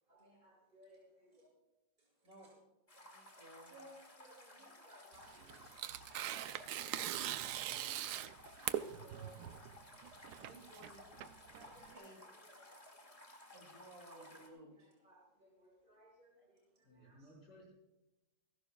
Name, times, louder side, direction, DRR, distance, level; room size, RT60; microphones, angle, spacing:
voice 1, 0.1-1.5 2.0-2.5 3.7-6.7 7.0-9.6 10.2-10.4 11.5-12.7 14.1-17.4, right 1 dB, 25° right, -5 dB, 6.3 m, -63 dB
sound 1, 2.9-14.5, left 1 dB, 20° left, 2.0 m, -58 dB
voice 2, 3.0-3.7 10.3-11.0 11.6-12.4 13.5-15.0, right 1 dB, 50° right, 2 dB, 3.2 m, -58 dB
Tearing, 5.1-11.9, right 11 dB, 70° right, 1.1 m, -42 dB
voice 3, 7.1-7.8 16.8-17.7, right 1 dB, 65° left, -4 dB, 5.6 m, -61 dB
28.5 x 11.5 x 2.3 m, 1.0 s
omnidirectional pair, 1.9 m